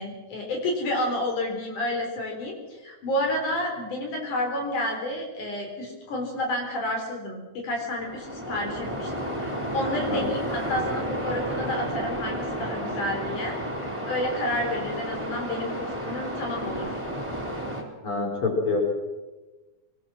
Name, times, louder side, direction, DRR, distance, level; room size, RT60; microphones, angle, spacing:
voice 1, 0.0-13.6 14.1-17.0, left 1 dB, 80° left, 1 dB, 5.5 m, -30 dB
Waves surf, 8.0-17.8, equal, 10° right, 3.8 m, -32 dB
voice 2, 18.0-18.8, left 3 dB, 45° left, 1 dB, 5.3 m, -26 dB
23.0 x 21.0 x 6.2 m, 1.2 s
omnidirectional pair, 3.5 m